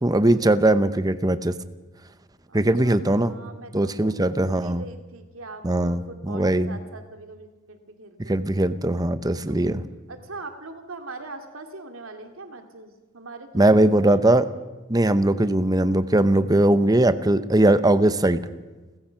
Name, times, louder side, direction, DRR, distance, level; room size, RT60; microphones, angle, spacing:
voice 1, 0.0-1.5 2.5-3.3 3.7-4.8 5.6-6.7 8.3-9.8 13.5-14.5 14.9-18.4, right 1 dB, 20° right, 13 dB, 0.8 m, -20 dB
voice 2, 2.5-8.4 9.4-9.8 10.1-14.2, right 2 dB, 75° right, 6 dB, 2.5 m, -42 dB
30.0 x 15.0 x 5.8 m, 1.2 s
head